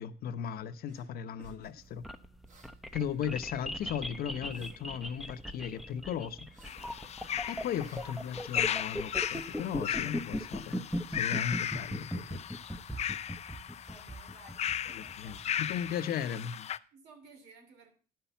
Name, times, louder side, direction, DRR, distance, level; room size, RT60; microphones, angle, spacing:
voice 1, 0.0-2.0 2.9-6.4 7.5-12.4 15.0-16.7, left 8 dB, 65° left, 0.8 m, -37 dB
sound 1, 0.9-1.1 1.4-3.6 3.8-4.8 5.2-5.9 6.4-9.6 10.0-10.1, right 3 dB, 50° right, 2.6 m, -58 dB
sound 2, 1.8-15.9, equal, ahead, 0.7 m, -39 dB
sound 3, 6.6-16.8, left 10 dB, 40° left, 0.4 m, -36 dB
voice 2, 7.3-7.7 13.8-15.4 16.9-17.9, right 3 dB, 85° right, 3.1 m, -57 dB
11.0 x 5.8 x 6.9 m
cardioid pair, 110°, 17 cm